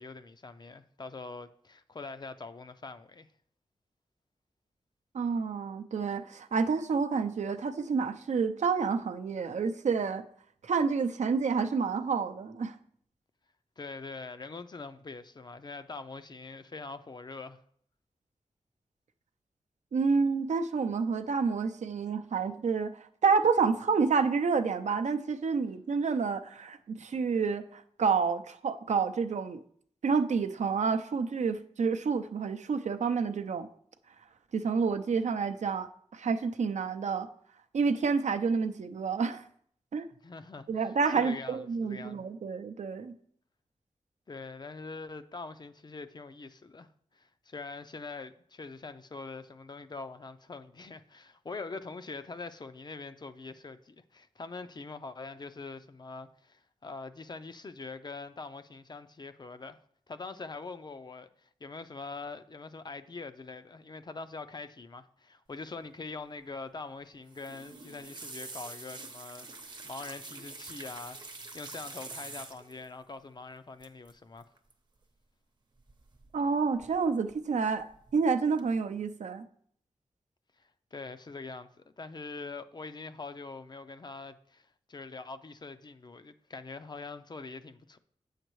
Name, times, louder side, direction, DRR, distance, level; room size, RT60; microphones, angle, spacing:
voice 1, 0.0-3.3 13.8-17.6 40.2-42.2 44.3-46.9 47.1-59.8 60.1-71.3 71.5-74.5 80.6-88.0, left 3 dB, 35° left, 0.4 m, -43 dB
voice 2, 5.1-10.2 10.6-12.7 19.9-29.6 30.0-33.7 34.5-37.3 37.7-39.4 39.9-40.1 40.7-43.1 76.3-77.9 78.1-79.4, right 5 dB, 80° right, 0.5 m, -29 dB
sound 1, 67.3-72.8 73.8-74.1 74.4-74.7 75.9-76.5 76.8-77.4 77.8-78.2 78.6-78.7, right 3 dB, 40° right, 0.7 m, -45 dB
8.2 x 6.5 x 3.1 m
wide cardioid pair, 120°, 12 cm